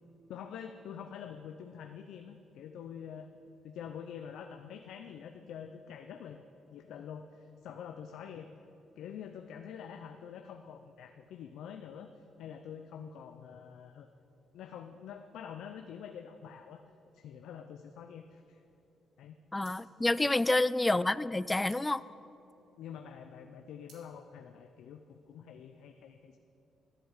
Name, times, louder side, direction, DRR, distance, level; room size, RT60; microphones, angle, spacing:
voice 1, 0.3-3.3 3.6-6.4 6.7-8.5 9.0-14.1 14.5-16.8 17.1-18.6 19.2-19.4 22.8-26.4, left 8 dB, 80° left, 6 dB, 0.6 m, -46 dB
voice 2, 19.5-22.0, left 2 dB, 15° left, 17 dB, 0.3 m, -28 dB
sound 1, 19.6-22.9 23.3-24.1, right 4 dB, 85° right, 2.4 m, -64 dB
13.0 x 7.9 x 8.2 m, 2.9 s
cardioid pair, 90°, 0 cm